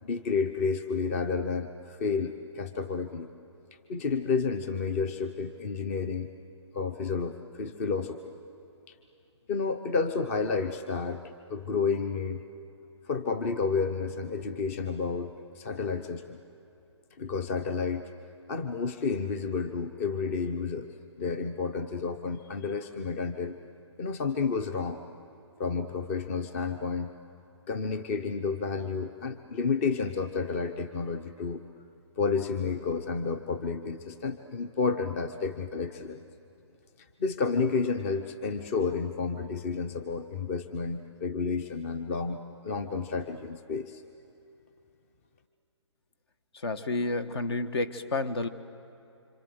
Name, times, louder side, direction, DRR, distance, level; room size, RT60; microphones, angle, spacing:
voice 1, 0.0-3.3 3.9-6.3 6.7-8.3 8.9-9.0 9.5-12.4 13.1-16.4 17.2-18.1 18.5-23.6 24.0-25.0 25.6-27.1 27.7-31.6 32.2-36.2 37.0-44.0, left 5 dB, 30° left, 9 dB, 0.9 m, -31 dB
voice 2, 46.5-48.5, left 2 dB, 60° left, 10 dB, 1.4 m, -30 dB
27.5 x 26.5 x 7.9 m, 2.8 s
hypercardioid pair, 160°, 15 cm